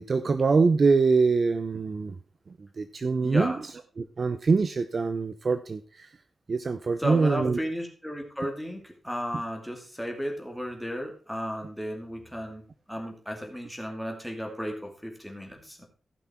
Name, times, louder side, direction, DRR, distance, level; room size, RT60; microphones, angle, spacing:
voice 1, 0.0-2.2 2.6-3.6 4.0-6.1 6.5-7.6, right 4 dB, 40° right, 10 dB, 0.6 m, -24 dB
voice 2, 3.2-3.6 7.0-12.6 12.9-15.8, equal, ahead, 2 dB, 2.4 m, -34 dB
15.0 x 6.1 x 4.3 m, 0.38 s
wide cardioid pair, 170°, 0 cm